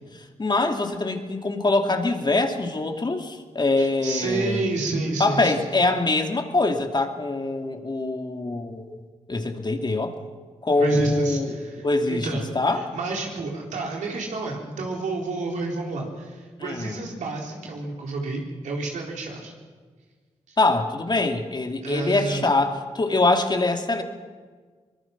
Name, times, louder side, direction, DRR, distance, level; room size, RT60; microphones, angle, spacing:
voice 1, 0.4-4.6 5.2-9.0 9.3-10.1 10.6-11.5 11.8-12.3 12.5-12.9 16.6-17.0 20.6-24.0, left 2 dB, 35° left, 4 dB, 2.7 m, -24 dB
voice 2, 3.8-5.7 10.8-19.5 20.5-20.6 21.8-22.5, right 3 dB, 85° right, 0 dB, 4.2 m, -30 dB
24.0 x 20.5 x 6.0 m, 1.5 s
cardioid pair, 50°, 12 cm